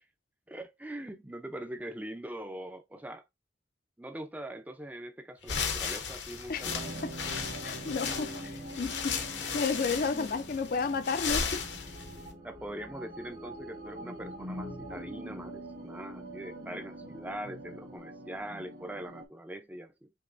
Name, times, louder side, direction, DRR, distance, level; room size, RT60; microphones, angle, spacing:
voice 1, 0.5-3.2 4.0-6.9 10.0-10.4 12.4-20.1, right 1 dB, 10° right, 0.5 m, -42 dB
sound 1, 5.4-12.3, left 6 dB, 70° left, 0.8 m, -35 dB
sound 2, 6.5-18.0, right 2 dB, 85° right, 1.6 m, -57 dB
sound 3, 6.6-19.3, right 1 dB, 50° right, 1.4 m, -44 dB
voice 2, 7.6-11.6, left 4 dB, 50° left, 0.4 m, -32 dB
5.4 x 2.9 x 2.6 m
head